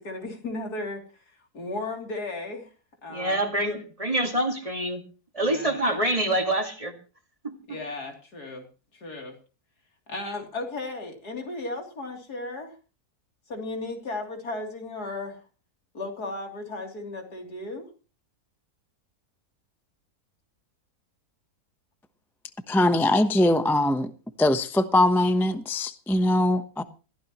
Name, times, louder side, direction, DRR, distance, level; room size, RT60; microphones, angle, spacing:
voice 1, 0.0-2.7 3.0-3.4 5.4-5.8 7.7-8.7 8.9-9.4 10.1-12.8 13.5-15.4 15.9-17.9, left 2 dB, 85° left, 3.7 m, -35 dB
voice 2, 3.1-5.0 5.3-6.9 7.4-7.5, right 1 dB, 20° right, 2.1 m, -26 dB
voice 3, 22.7-24.1 24.4-26.8, left 1 dB, ahead, 0.7 m, -22 dB
21.5 x 15.0 x 3.0 m
omnidirectional pair, 1.6 m